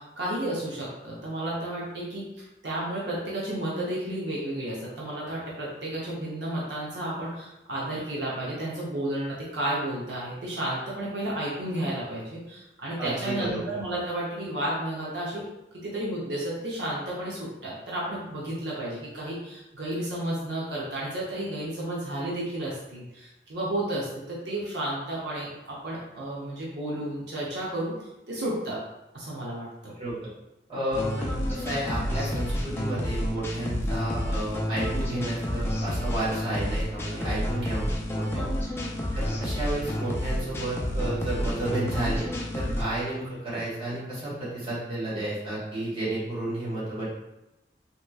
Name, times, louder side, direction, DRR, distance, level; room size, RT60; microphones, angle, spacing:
voice 1, 0.0-15.4 15.8-28.8 29.1-29.9 37.1-37.4 38.3-38.5 42.6-42.8, right 1 dB, 80° right, -6 dB, 0.7 m, -32 dB
voice 2, 13.0-13.7 30.0-30.3 30.7-38.5 39.1-42.3 42.5-47.2, right 1 dB, 30° right, -9 dB, 1.4 m, -32 dB
sound 1, 30.9-42.8, equal, 15° left, 0.3 m, -30 dB
3.5 x 2.9 x 2.3 m, 0.94 s
head